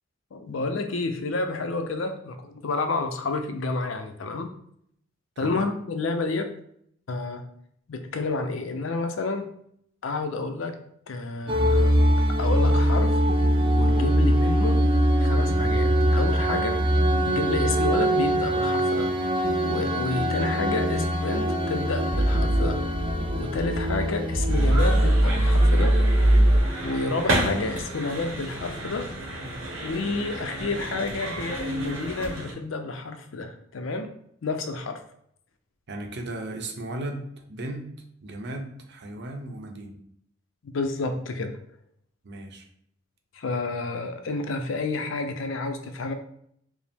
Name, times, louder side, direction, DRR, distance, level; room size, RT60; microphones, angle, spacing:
voice 1, 0.3-4.5 5.4-6.5 7.1-7.4 7.9-9.5 10.0-10.8 11.1-12.0 12.4-13.2 13.7-14.8 15.2-16.8 17.3-19.1 19.6-22.8 23.4-25.9 26.8-29.1 29.8-34.1 34.4-35.0 40.7-41.5 43.4-46.1, left 3 dB, 75° left, 6 dB, 0.5 m, -30 dB
voice 2, 5.4-5.7 35.9-37.9 38.2-40.0 42.2-42.7, right 1 dB, 60° right, 3 dB, 0.7 m, -36 dB
sound 1, 11.5-26.6, equal, 25° right, 0.4 m, -21 dB
sound 2, 24.5-32.5, right 1 dB, 85° right, 0.9 m, -32 dB
4.9 x 2.0 x 3.4 m, 0.70 s
head